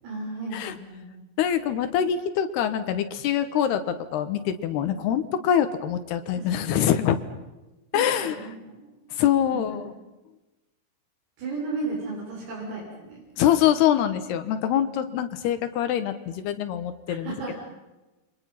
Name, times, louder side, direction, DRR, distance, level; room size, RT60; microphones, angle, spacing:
voice 1, 0.0-1.1 4.9-5.0 6.4-6.8 7.9-8.9 9.5-10.0 11.4-13.2 14.8-15.0 17.1-17.5, right 3 dB, 80° right, -5 dB, 9.7 m, -35 dB
voice 2, 1.4-7.2 7.9-8.4 9.1-9.9 13.4-17.5, left 10 dB, 70° left, 10 dB, 2.6 m, -24 dB
30.0 x 25.0 x 5.8 m, 1.1 s
omnidirectional pair, 6.0 m